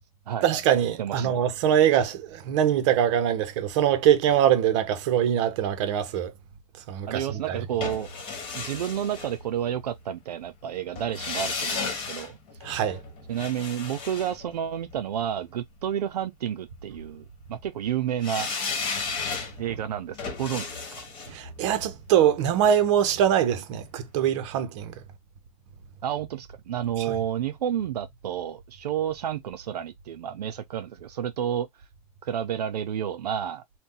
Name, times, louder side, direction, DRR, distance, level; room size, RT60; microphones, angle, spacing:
voice 1, 0.4-6.3 6.9-7.6 12.6-13.0 21.3-24.9 27.1-27.2, right 10 dB, 50° right, 0.8 m, -23 dB
voice 2, 7.1-8.1 8.5-12.4 13.3-18.5 19.6-21.0 26.0-31.7 32.2-33.6, right 10 dB, 85° right, 0.5 m, -30 dB
sound 1, 7.8-9.9 11.0-15.2 18.2-23.2 23.5-23.6, left 4 dB, 25° left, 1.3 m, -34 dB
2.7 x 2.2 x 3.7 m
hypercardioid pair, 130°, 20 cm